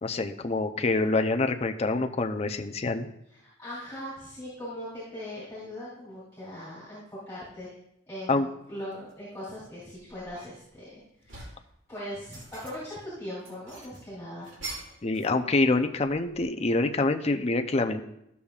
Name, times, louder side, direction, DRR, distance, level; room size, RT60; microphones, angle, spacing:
voice 1, 0.0-3.1 8.3-8.5 15.0-18.0, left 3 dB, 35° left, 6 dB, 0.5 m, -26 dB
voice 2, 3.6-7.7 8.1-11.5 11.9-14.5, left 1 dB, 10° left, -11 dB, 3.3 m, -40 dB
sound 1, 8.9-9.2 9.7-10.7 11.0-11.7 12.1-13.0 13.4-15.4 15.6-16.6, right 2 dB, 80° right, 2.4 m, -44 dB
13.0 x 6.9 x 2.4 m, 0.80 s
head